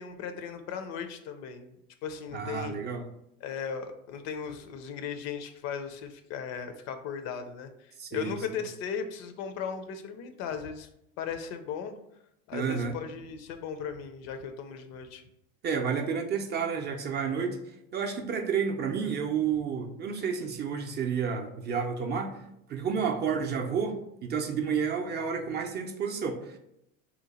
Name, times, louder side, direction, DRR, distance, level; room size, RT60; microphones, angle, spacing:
voice 1, 0.0-1.7 2.0-2.8 3.4-7.7 8.1-10.9 11.2-12.0 12.5-15.2, left 7 dB, 60° left, 8 dB, 0.5 m, -37 dB
voice 2, 2.3-3.1 8.0-8.4 12.5-13.0 15.6-17.6 17.9-22.4 22.7-26.6, right 6 dB, 35° right, 3 dB, 0.5 m, -30 dB
2.8 x 2.1 x 4.0 m, 0.79 s
supercardioid pair, 105°, 30 cm